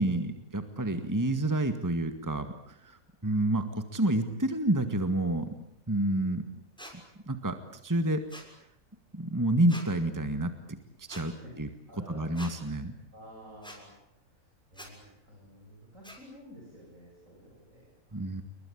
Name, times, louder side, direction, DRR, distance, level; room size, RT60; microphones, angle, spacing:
voice 1, 0.0-3.0 3.2-5.5 5.9-6.4 7.3-7.6 7.8-8.2 9.1-11.7 12.1-12.9 18.1-18.4, right 1 dB, 15° right, 8 dB, 1.9 m, -29 dB
sound 1, 6.8-6.9 8.3-8.5 9.7-9.9 11.1-11.2 12.3-12.5 13.6-13.8 14.7-14.9 16.0-16.2, equal, 5° left, 6.6 m, -45 dB
voice 2, 11.9-12.5 13.1-13.9 14.7-18.2, equal, 65° right, -1 dB, 8.3 m, -51 dB
29.0 x 23.0 x 8.8 m, 0.76 s
omnidirectional pair, 1.5 m